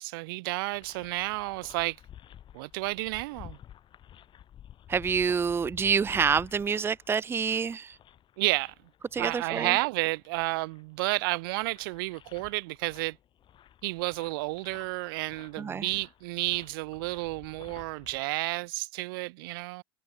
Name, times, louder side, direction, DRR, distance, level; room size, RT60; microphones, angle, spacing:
voice 1, 0.0-2.0 2.5-3.6 8.4-8.7 9.2-13.2 13.8-19.8, right 24 dB, 60° right, 1.7 m, -31 dB
sound 1, 0.7-18.2, left 10 dB, 40° left, 7.3 m, -52 dB
voice 2, 4.9-7.9 9.1-9.8 15.6-15.9, right 6 dB, 20° right, 0.6 m, -27 dB
figure-of-eight pair, 75°, 13 cm